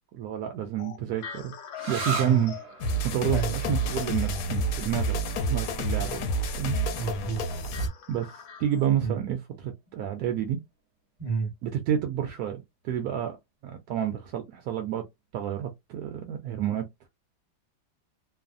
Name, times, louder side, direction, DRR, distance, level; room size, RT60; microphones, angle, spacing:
voice 1, 0.1-1.5 1.9-2.5 3.1-6.3 6.6-6.8 8.1-8.3 8.6-10.6 11.6-13.4 13.6-15.0 15.3-16.8, right 10 dB, 75° right, 0.9 m, -29 dB
sound 1, 0.8-9.0, left 7 dB, 85° left, 1.4 m, -46 dB
sound 2, 1.8-9.1, right 3 dB, 50° right, 1.1 m, -40 dB
sound 3, 2.8-7.9, right 1 dB, 70° left, 0.9 m, -29 dB
voice 2, 6.9-7.4 9.0-9.2 11.2-11.5, right 5 dB, 30° right, 0.9 m, -30 dB
3.1 x 2.0 x 2.4 m
omnidirectional pair, 2.1 m